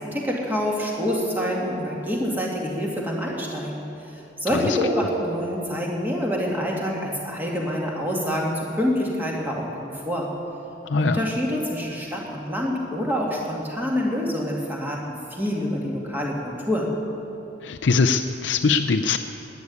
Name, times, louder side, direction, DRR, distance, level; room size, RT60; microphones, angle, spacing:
voice 1, 0.0-10.3 11.0-16.9, equal, 10° right, -3 dB, 2.1 m, -26 dB
voice 2, 10.8-11.2 17.6-19.2, left 4 dB, 65° left, 5 dB, 0.5 m, -22 dB
12.0 x 9.5 x 9.7 m, 2.9 s
head